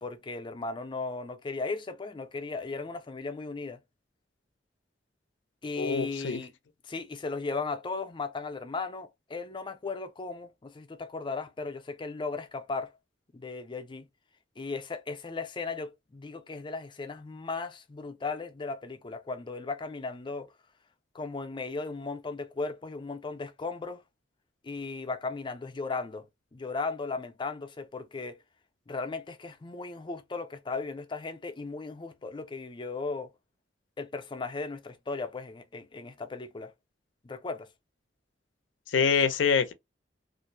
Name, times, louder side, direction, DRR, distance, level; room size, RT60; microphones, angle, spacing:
voice 1, 0.0-3.8 5.6-6.5 6.8-12.9 13.3-14.1 14.6-20.5 21.1-24.0 24.6-26.3 26.5-28.4 28.9-33.3 34.0-36.7 37.2-37.7, left 4 dB, 25° left, 0.4 m, -36 dB
voice 2, 5.8-6.4 38.9-39.7, left 6 dB, 85° left, 0.5 m, -25 dB
2.5 x 2.0 x 2.5 m
head